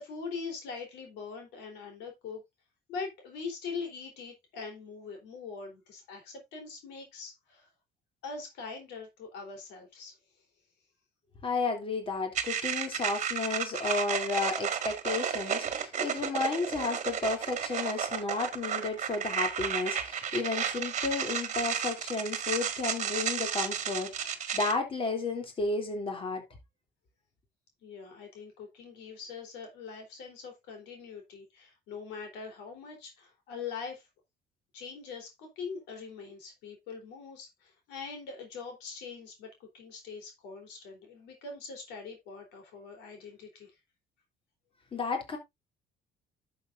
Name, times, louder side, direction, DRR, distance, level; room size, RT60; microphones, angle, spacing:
voice 1, 0.0-2.4 2.9-7.7 8.2-10.2 27.8-34.1 34.7-43.7, left 5 dB, 90° left, 3.4 m, -42 dB
voice 2, 11.4-26.4 44.9-45.4, left 3 dB, 30° left, 2.8 m, -32 dB
sound 1, 12.3-24.7, right 8 dB, 45° right, 1.6 m, -33 dB
11.5 x 7.2 x 2.5 m
cardioid pair, 110°, 17 cm